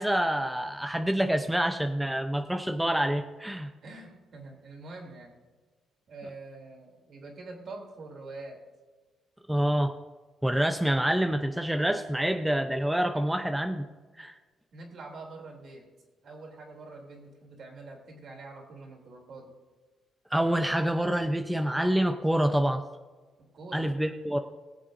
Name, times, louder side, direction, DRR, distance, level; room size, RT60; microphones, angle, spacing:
voice 1, 0.0-3.7 9.5-9.9 10.4-13.9 14.2-14.4 20.3-22.8 23.7-24.4, right 1 dB, 5° right, 6 dB, 0.7 m, -27 dB
voice 2, 3.8-5.4 6.1-8.6 14.1-14.2 14.7-15.9 16.2-19.5 23.4-23.9, right 3 dB, 60° right, 1 dB, 3.2 m, -45 dB
21.0 x 7.3 x 2.7 m, 1.4 s
cardioid pair, 90°, 0 cm